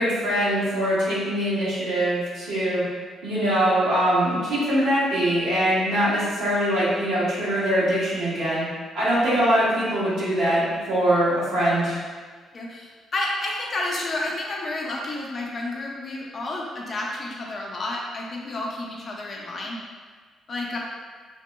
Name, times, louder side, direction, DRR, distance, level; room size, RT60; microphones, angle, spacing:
voice 1, 0.0-2.8 3.2-8.7 8.9-12.0, right 1 dB, 90° right, -10 dB, 1.2 m, -22 dB
voice 2, 12.5-19.8 20.5-20.8, left 2 dB, 45° left, -2 dB, 0.6 m, -30 dB
2.8 x 2.8 x 2.2 m, 1.5 s
cardioid pair, 90°, 0 cm